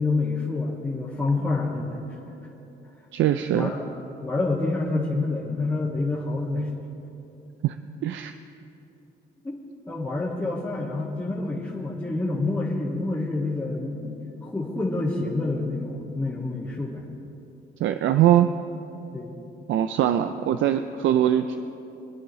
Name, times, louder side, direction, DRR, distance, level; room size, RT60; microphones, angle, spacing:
voice 1, 0.0-2.2 3.5-3.8 4.2-6.7 9.4-9.5 9.9-17.1 19.1-19.5, left 3 dB, 15° left, -8 dB, 2.0 m, -28 dB
voice 2, 3.1-3.8 7.6-7.8 8.0-8.3 17.8-18.5 19.7-21.6, right 11 dB, 75° right, 9 dB, 0.5 m, -22 dB
24.5 x 9.9 x 3.2 m, 3.0 s
cardioid pair, 90°, 20 cm